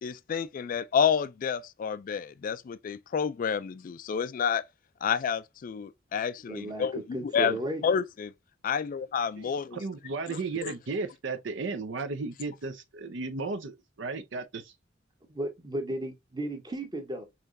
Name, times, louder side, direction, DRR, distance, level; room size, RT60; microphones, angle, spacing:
voice 1, 0.0-4.6 5.0-7.0 7.3-7.5 7.8-8.3 8.6-9.8 10.3-10.7, left 7 dB, 45° left, 0.3 m, -29 dB
voice 2, 6.5-7.8 15.3-17.3, right 1 dB, 20° right, 1.0 m, -34 dB
voice 3, 9.4-14.7, right 4 dB, 65° right, 0.6 m, -35 dB
5.7 x 3.1 x 2.6 m
head